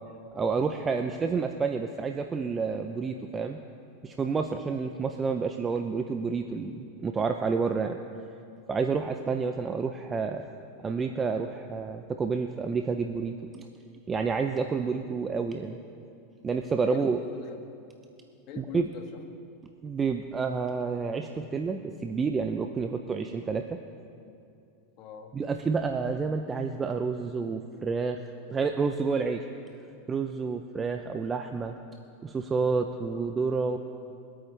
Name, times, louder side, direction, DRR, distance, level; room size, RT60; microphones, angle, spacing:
voice 1, 0.3-3.6 4.0-8.0 8.7-10.4 10.8-13.6 14.1-15.8 16.4-17.2 18.6-18.9 19.8-23.6 25.3-28.2 28.5-29.4 30.1-31.7 32.2-33.8, right 5 dB, 20° right, 6 dB, 0.7 m, -29 dB
voice 2, 16.8-17.6 18.5-19.4 25.0-25.4, left 7 dB, 50° left, 5 dB, 1.6 m, -43 dB
23.5 x 8.8 x 3.4 m, 2.6 s
hypercardioid pair, 100°, 0 cm